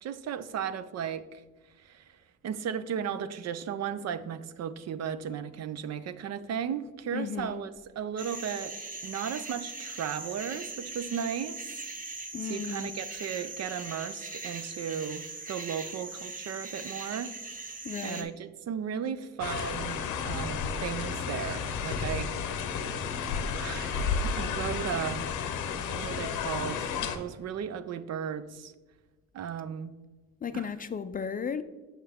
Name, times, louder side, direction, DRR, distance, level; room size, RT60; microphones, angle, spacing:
voice 1, 0.0-1.4 1.8-2.2 2.4-8.8 9.0-11.7 12.4-17.3 18.0-20.0 20.2-22.3 23.6-25.3 25.8-28.7 29.3-30.0 30.5-30.7, right 8 dB, 60° right, 0.5 m, -35 dB
voice 2, 7.1-7.6 12.3-12.9 17.8-18.3 30.4-31.6, left 7 dB, 30° left, 0.4 m, -35 dB
sound 1, 8.2-18.2, right 3 dB, 25° right, 0.8 m, -40 dB
sound 2, 19.4-27.2, left 6 dB, 90° left, 0.7 m, -32 dB
6.5 x 5.7 x 3.5 m
cardioid pair, 90°, 30 cm